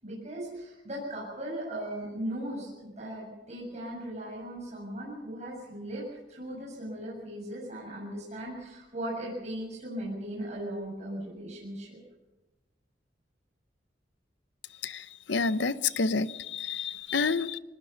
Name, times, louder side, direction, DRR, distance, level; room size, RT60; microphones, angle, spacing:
voice 1, 0.0-12.0, right 1 dB, 40° right, 7.2 m, -38 dB
voice 2, 14.8-17.6, left 4 dB, 75° left, 0.8 m, -29 dB
23.0 x 20.5 x 5.8 m
head